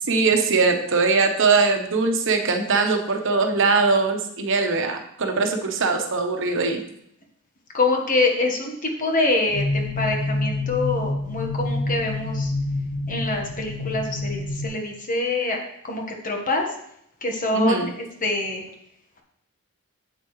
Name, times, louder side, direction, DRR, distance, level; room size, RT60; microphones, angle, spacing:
voice 1, 0.1-6.8 17.5-17.9, right 4 dB, 55° right, 4 dB, 1.1 m, -21 dB
voice 2, 7.7-12.5 13.1-15.6 15.8-16.7 17.2-17.9 18.2-18.6, left 2 dB, 35° left, 1 dB, 1.3 m, -25 dB
sound 1, 9.5-14.7, left 2 dB, 55° left, 1.9 m, -27 dB
8.4 x 7.8 x 3.2 m, 0.73 s
head